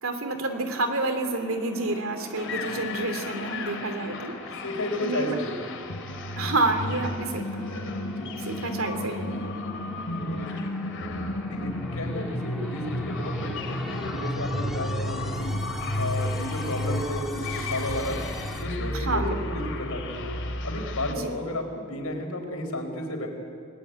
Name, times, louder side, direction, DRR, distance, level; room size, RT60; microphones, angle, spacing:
voice 1, 0.0-4.6 5.0-5.4 6.4-7.7 8.4-9.6 10.2-10.7 18.9-19.4 21.1-21.3, right 2 dB, 70° right, 7 dB, 2.8 m, -29 dB
sound 1, 0.5-18.6, equal, ahead, 2.3 m, -42 dB
sound 2, 2.3-21.1, left 1 dB, 60° left, 3.0 m, -32 dB
voice 2, 4.6-5.6 8.1-8.3 11.5-15.5 16.0-18.2 18.6-20.3 20.6-23.3, left 1 dB, 85° left, 4 dB, 4.7 m, -32 dB
29.0 x 19.5 x 9.2 m, 2.3 s
head